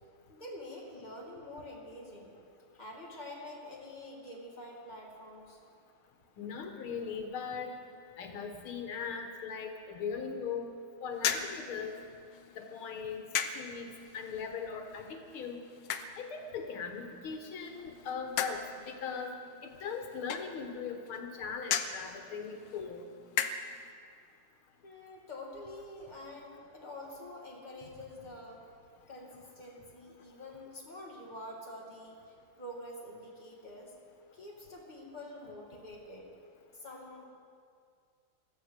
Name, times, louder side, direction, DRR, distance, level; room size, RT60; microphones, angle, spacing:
voice 1, 0.3-2.3 2.7-5.6 24.8-28.6 29.1-32.2 32.6-33.9 34.3-36.3 36.7-37.3, left 1 dB, 20° left, -3 dB, 2.7 m, -46 dB
voice 2, 6.4-7.7 8.2-10.7 11.0-11.9 12.6-13.3 13.5-13.9 14.1-15.6 16.2-19.3 19.6-23.1, left 6 dB, 85° left, 4 dB, 2.1 m, -39 dB
sound 1, 11.1-23.9, left 8 dB, 70° left, 1.4 m, -39 dB
16.0 x 13.0 x 6.5 m, 2.3 s
omnidirectional pair, 2.3 m